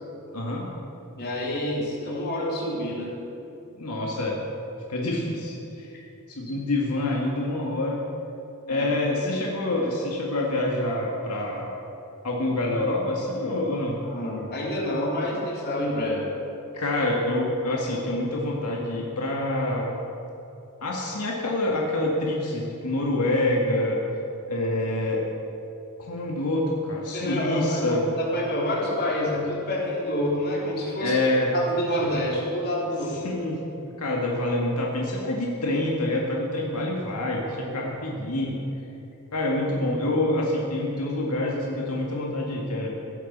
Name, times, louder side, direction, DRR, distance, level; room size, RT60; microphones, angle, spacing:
voice 1, 0.3-0.7 3.8-4.4 4.9-5.9 6.3-8.0 8.7-11.7 12.2-14.0 16.7-19.9 20.8-24.0 24.5-25.2 26.0-28.0 31.0-31.5 33.2-33.6 34.0-38.6 39.3-43.1, left 1 dB, 90° left, -2 dB, 2.1 m, -26 dB
voice 2, 1.1-3.1 5.9-6.0 8.7-8.9 14.0-16.3 27.1-31.2 31.5-33.2, left 1 dB, 45° left, -4 dB, 3.5 m, -28 dB
17.0 x 8.5 x 7.4 m, 2.9 s
head